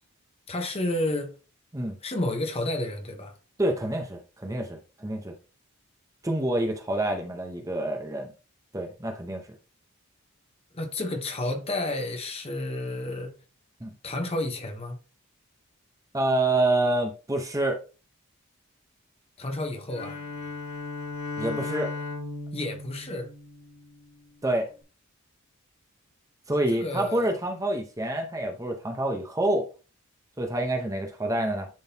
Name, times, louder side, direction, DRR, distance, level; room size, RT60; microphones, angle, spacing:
voice 1, 0.5-1.4 2.0-3.4 10.7-13.3 14.0-15.0 19.4-20.2 22.5-23.3 26.7-27.4, left 1 dB, 25° left, 1.0 m, -31 dB
voice 2, 3.6-5.3 6.2-8.3 8.7-9.4 13.8-13.9 16.1-17.8 21.4-21.9 24.4-24.7 26.5-29.7 30.4-31.7, right 1 dB, 15° right, 0.8 m, -27 dB
Bowed string instrument, 19.9-24.1, left 3 dB, 75° left, 1.9 m, -36 dB
10.5 x 3.9 x 2.8 m
head